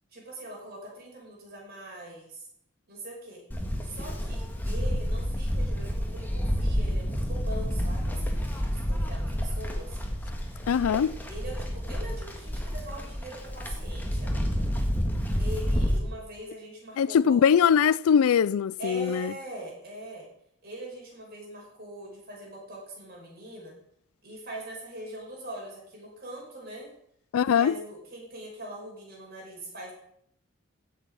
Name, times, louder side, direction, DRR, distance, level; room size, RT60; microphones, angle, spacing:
voice 1, 0.1-2.5 2.9-3.4 3.8-10.0 11.3-14.6 15.4-17.4 18.8-20.3 20.6-23.7 24.2-26.9 27.6-29.9, right 1 dB, 45° right, 5.5 m, -42 dB
Livestock farm animals working animals, 3.5-16.0, equal, 10° left, 1.7 m, -29 dB
voice 2, 10.7-11.2 17.0-19.3 27.3-27.8, left 7 dB, 85° left, 0.4 m, -22 dB
16.0 x 6.9 x 5.5 m
head